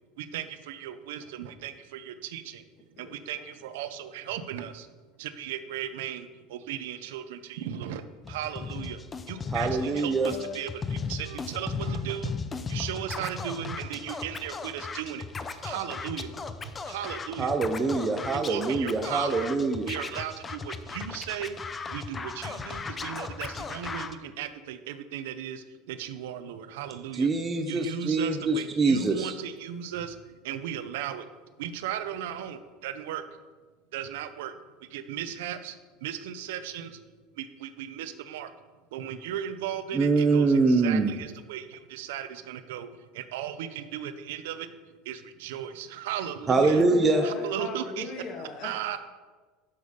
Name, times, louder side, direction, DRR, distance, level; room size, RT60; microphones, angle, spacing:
voice 1, 0.2-2.6 3.0-4.9 5.2-9.0 9.3-12.3 12.7-15.3 15.5-16.4 16.6-17.6 18.3-19.5 19.9-21.6 21.9-27.3 27.7-30.2 30.4-31.3 31.6-33.2 33.9-34.5 34.8-37.0 37.4-38.5 38.9-42.9 43.1-44.7 45.0-46.8 47.2-48.1 48.6-49.0, right 10 dB, 85° right, 10 dB, 0.7 m, -36 dB
voice 2, 3.0-3.5 9.4-9.5 9.9-10.6 46.7-49.0, left 3 dB, 45° left, 3 dB, 1.8 m, -39 dB
Scratching (performance technique), 8.2-24.1, left 4 dB, 20° left, 0.6 m, -37 dB
voice 3, 9.5-10.3 17.4-19.9 27.1-29.3 39.9-41.2 46.5-47.2, right 3 dB, 20° right, 5 dB, 0.7 m, -24 dB
10.5 x 7.0 x 5.2 m, 1.4 s
supercardioid pair, 140°, 0 cm